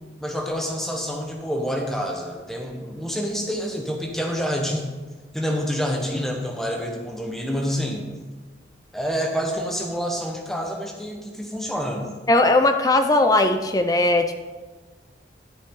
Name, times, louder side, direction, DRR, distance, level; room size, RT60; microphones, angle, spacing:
voice 1, 0.2-4.9 5.3-8.1 8.9-12.2, equal, ahead, 0 dB, 1.1 m, -27 dB
voice 2, 12.3-14.3, left 2 dB, 20° left, 6 dB, 0.5 m, -18 dB
11.5 x 6.9 x 3.8 m, 1.3 s
head